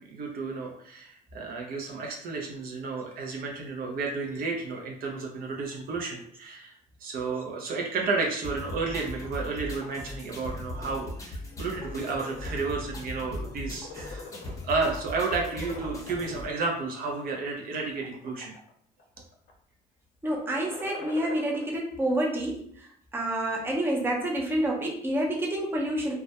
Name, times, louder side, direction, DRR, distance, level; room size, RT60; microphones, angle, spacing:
voice 1, 0.1-6.7 7.0-14.3 14.6-18.5, right 4 dB, 60° right, 0 dB, 0.5 m, -32 dB
sound 1, 8.4-16.5, left 1 dB, 20° left, 0.7 m, -39 dB
sound 2, 11.5-12.5 13.0-13.2 13.5-14.8 15.1-16.3 16.9-17.4 17.9-18.7 19.0-19.5 20.4-21.6, left 4 dB, 70° left, 0.6 m, -43 dB
voice 2, 20.2-26.2, right 1 dB, 15° right, -1 dB, 0.5 m, -28 dB
2.2 x 2.1 x 2.7 m, 0.62 s
cardioid pair, 110°, 17 cm